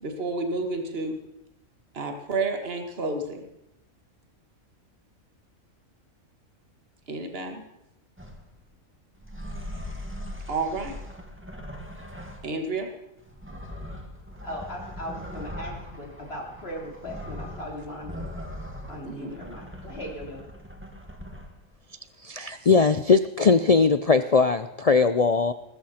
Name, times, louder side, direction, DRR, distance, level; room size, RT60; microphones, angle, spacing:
voice 1, 0.0-1.2 1.9-3.4 7.1-7.6 10.5-11.0 12.4-12.9 19.0-19.3, right 3 dB, 45° right, 4 dB, 2.0 m, -30 dB
sound 1, 8.2-8.5 9.2-12.7 13.2-21.7, left 1 dB, 10° right, 2.0 m, -40 dB
voice 2, 14.4-18.3 18.9-20.4, equal, 45° left, -1 dB, 3.8 m, -38 dB
voice 3, 22.2-25.5, left 4 dB, 70° left, 11 dB, 0.3 m, -20 dB
20.0 x 14.0 x 4.3 m, 0.85 s
omnidirectional pair, 1.5 m